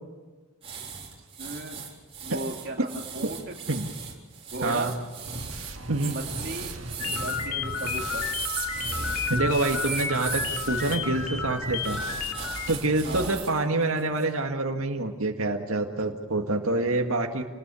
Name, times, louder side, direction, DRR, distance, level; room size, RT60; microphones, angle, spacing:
sound 1, 0.6-11.0 11.8-13.6 14.0-14.2, right 7 dB, 25° right, 4.3 m, -38 dB
voice 1, 1.4-1.8 2.2-3.6 4.5-5.0 6.0-6.7 7.2-8.5 13.0-13.4, right 2 dB, 50° right, 1 dB, 2.5 m, -36 dB
voice 2, 4.6-4.9 5.9-6.2 9.3-12.0 12.7-17.4, right 2 dB, 85° right, 3 dB, 1.8 m, -26 dB
sound 2, 5.3-13.3, right 1 dB, 65° right, 2.1 m, -39 dB
sound 3, 7.0-12.8, left 6 dB, 80° left, 2.7 m, -32 dB
29.0 x 20.0 x 7.1 m, 1.3 s
head